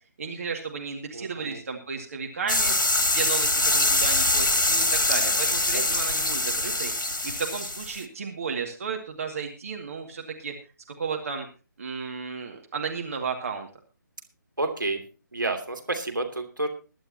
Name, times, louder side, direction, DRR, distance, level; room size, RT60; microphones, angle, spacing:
voice 1, 0.2-2.7 3.1-6.9 7.2-10.5 11.0-11.5 11.8-13.7, right 5 dB, 45° right, 2 dB, 2.2 m, -33 dB
voice 2, 1.1-1.6 5.7-5.8 14.6-15.0 15.3-16.7, right 2 dB, 70° right, 4 dB, 2.8 m, -30 dB
sound 1, 2.5-8.0, left 2 dB, 70° left, 2.0 m, -24 dB
21.0 x 11.0 x 2.9 m, 0.33 s
figure-of-eight pair, 145°, 11 cm